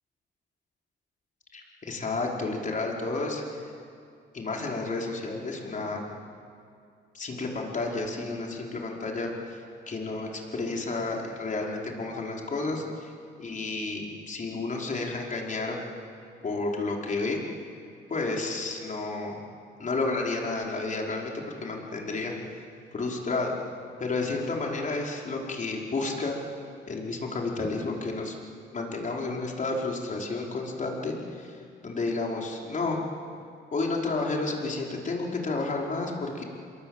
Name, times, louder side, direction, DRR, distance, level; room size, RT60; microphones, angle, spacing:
voice 1, 1.5-3.6 4.3-6.0 7.1-13.1 13.4-15.8 16.4-17.4 18.1-19.4 19.8-22.3 22.9-23.5 24.0-26.4 26.9-28.4 28.7-33.0 33.7-36.4, left 3 dB, 40° left, -1 dB, 5.1 m, -31 dB
27.5 x 22.0 x 8.1 m, 2.4 s
cardioid pair, 90°, 20 cm